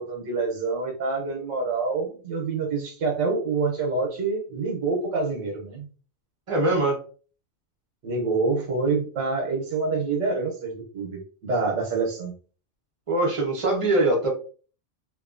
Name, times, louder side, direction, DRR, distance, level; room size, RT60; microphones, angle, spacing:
voice 1, 0.0-5.9 8.0-12.3, right 4 dB, 80° right, 1 dB, 1.1 m, -27 dB
voice 2, 6.5-7.0 13.1-14.3, right 2 dB, 30° right, -1 dB, 0.7 m, -22 dB
2.7 x 2.4 x 2.4 m, 0.40 s
omnidirectional pair, 1.3 m